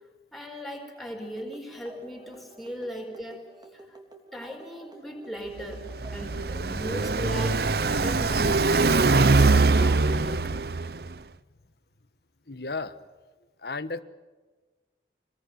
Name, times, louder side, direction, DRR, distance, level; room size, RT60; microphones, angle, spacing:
voice 1, 0.3-3.4 3.7-4.0 4.3-10.5, equal, ahead, 1 dB, 4.6 m, -38 dB
sound 1, 1.2-6.4, right 3 dB, 20° right, 3.1 m, -50 dB
Car passing by, 5.6-11.1, right 3 dB, 60° right, 0.7 m, -22 dB
voice 2, 12.5-13.0 13.6-14.0, left 3 dB, 65° left, 12 dB, 1.4 m, -33 dB
26.5 x 21.0 x 9.3 m, 1.3 s
head